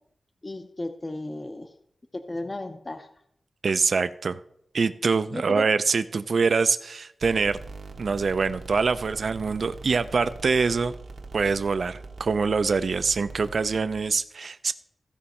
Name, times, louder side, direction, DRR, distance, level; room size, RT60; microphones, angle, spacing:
voice 1, 0.4-1.7 2.1-3.1 5.3-5.6, left 2 dB, 25° left, 7 dB, 0.5 m, -34 dB
voice 2, 3.6-4.4 4.7-7.6 8.0-10.9 11.3-14.7, right 4 dB, 60° right, 12 dB, 0.4 m, -24 dB
sound 1, 7.2-14.0, right 3 dB, 75° right, 1.0 m, -42 dB
15.0 x 5.2 x 4.2 m, 0.70 s
wide cardioid pair, 145°, 0 cm